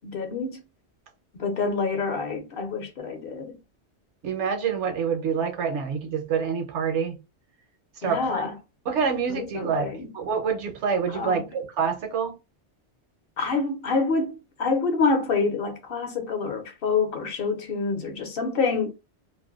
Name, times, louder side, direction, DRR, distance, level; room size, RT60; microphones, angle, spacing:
voice 1, 0.0-0.6 1.3-3.6 8.0-8.5 9.3-10.1 11.1-11.4 13.4-18.9, left 4 dB, 55° left, 0.9 m, -27 dB
voice 2, 4.2-7.2 8.0-8.4 8.9-12.3, right 6 dB, 80° right, 1.0 m, -27 dB
2.6 x 2.2 x 2.3 m
omnidirectional pair, 1.2 m